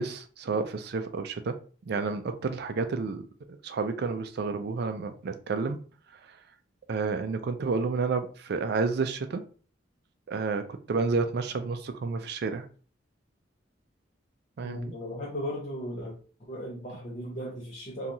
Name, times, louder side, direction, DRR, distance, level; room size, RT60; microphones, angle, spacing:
voice 1, 0.0-1.6 1.9-3.2 3.5-5.8 6.1-6.4 6.9-9.4 10.3-12.7 14.6-14.9, right 4 dB, 60° right, 0.4 m, -30 dB
voice 2, 14.6-16.2 16.5-18.1, equal, 40° left, 0.6 m, -36 dB
2.9 x 2.3 x 2.6 m
head